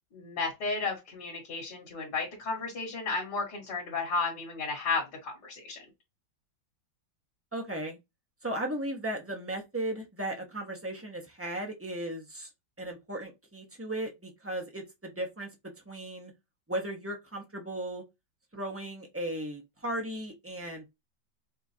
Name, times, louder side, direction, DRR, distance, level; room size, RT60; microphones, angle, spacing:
voice 1, 0.1-5.8, left 4 dB, 60° left, 2.1 m, -33 dB
voice 2, 7.5-8.0 8.4-12.5 12.8-15.5 15.9-16.3 16.7-18.0 18.5-20.9, right 1 dB, 15° right, 0.5 m, -36 dB
5.4 x 2.5 x 2.7 m
omnidirectional pair, 2.1 m